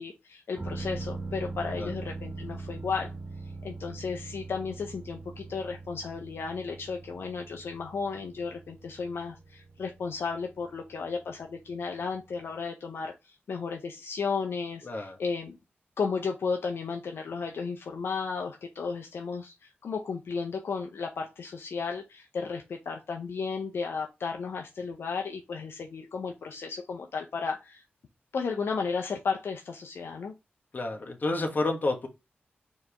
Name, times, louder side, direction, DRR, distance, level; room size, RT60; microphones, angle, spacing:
voice 1, 0.0-3.1 3.6-15.6 16.0-27.8 28.3-30.3, left 5 dB, 75° left, 3 dB, 0.6 m, -34 dB
sound 1, 0.6-12.1 12.4-12.5, right 3 dB, 35° right, 1.3 m, -41 dB
voice 2, 14.8-15.2 30.7-32.1, left 2 dB, 50° left, 2 dB, 1.2 m, -30 dB
4.5 x 2.9 x 3.4 m, 0.24 s
cardioid pair, 65°, 4 cm